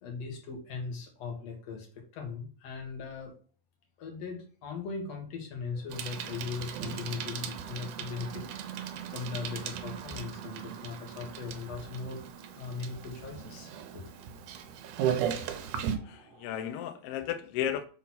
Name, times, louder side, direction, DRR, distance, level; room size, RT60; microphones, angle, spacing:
voice 1, 0.0-3.3 4.0-14.0, left 5 dB, 60° left, 2.7 m, -39 dB
sound 1, 5.7-16.7, right 4 dB, 60° right, 1.4 m, -57 dB
Bicycle, 5.9-16.0, right 9 dB, 85° right, 2.3 m, -37 dB
voice 2, 16.0-17.9, left 10 dB, 90° left, 1.3 m, -34 dB
6.2 x 4.0 x 5.8 m
omnidirectional pair, 3.6 m